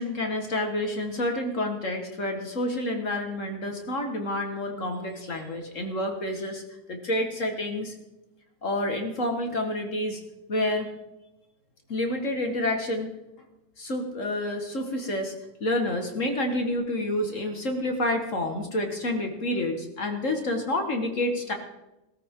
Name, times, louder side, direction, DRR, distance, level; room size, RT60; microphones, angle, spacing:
voice 1, 0.0-6.6 6.9-7.9 8.6-10.2 10.5-10.9 11.9-13.1 13.8-15.3 15.6-21.5, left 1 dB, 50° left, 4 dB, 2.0 m, -28 dB
19.0 x 13.5 x 3.7 m, 0.97 s
omnidirectional pair, 1.8 m